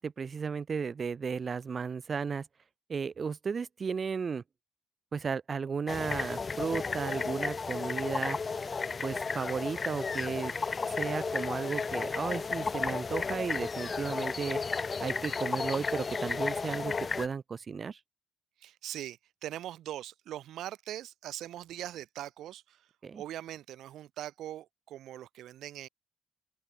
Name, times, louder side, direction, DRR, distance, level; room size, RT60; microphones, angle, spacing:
voice 1, 0.0-2.5 2.9-4.4 5.1-8.4 9.0-10.5 10.9-14.6 15.0-18.0 23.0-23.2, right 5 dB, 45° right, 1.6 m, -34 dB
sound 1, 5.9-17.3, left 4 dB, 35° left, 0.8 m, -33 dB
voice 2, 18.6-22.9 23.2-25.9, right 12 dB, 90° right, 1.8 m, -41 dB
open air
cardioid pair, 95°, 0 cm